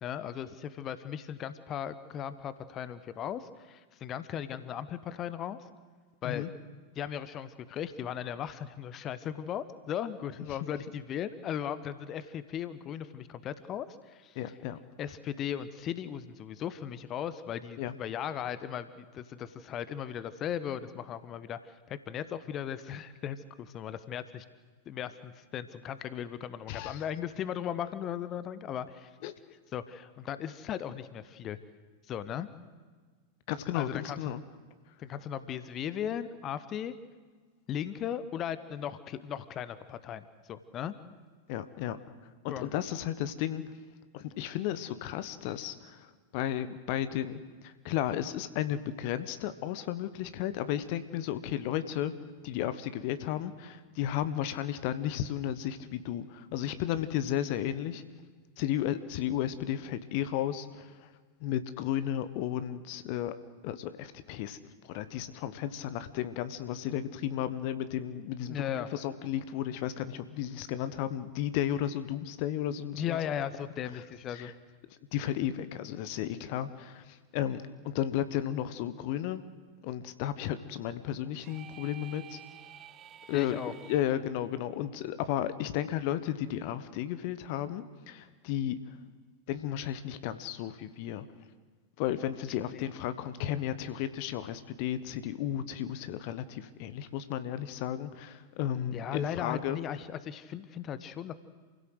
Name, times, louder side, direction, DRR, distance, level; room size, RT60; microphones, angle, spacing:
voice 1, 0.0-5.6 6.2-6.4 6.9-14.4 15.0-24.4 24.9-29.1 29.7-31.6 32.1-32.5 33.7-34.3 35.0-36.9 37.7-40.9 42.5-42.7 68.5-68.9 72.9-74.5 83.3-83.7 92.7-92.8 98.9-101.3, left 9 dB, 30° left, 14 dB, 1.1 m, -37 dB
voice 2, 14.3-14.8 17.8-17.9 26.7-27.0 29.2-29.3 33.5-34.4 41.5-42.0 42.4-43.6 44.1-52.1 52.4-58.0 58.6-61.1 61.4-63.3 63.6-64.6 64.8-73.2 74.3-74.5 75.1-79.4 79.8-82.4 83.3-83.6 83.9-89.0 89.5-91.3 92.0-99.8, left 11 dB, 45° left, 12 dB, 1.2 m, -33 dB
sound 1, 81.4-84.2, right 11 dB, 30° right, 0.9 m, -50 dB
28.0 x 16.5 x 8.0 m, 1.5 s
figure-of-eight pair, 90°, 0 cm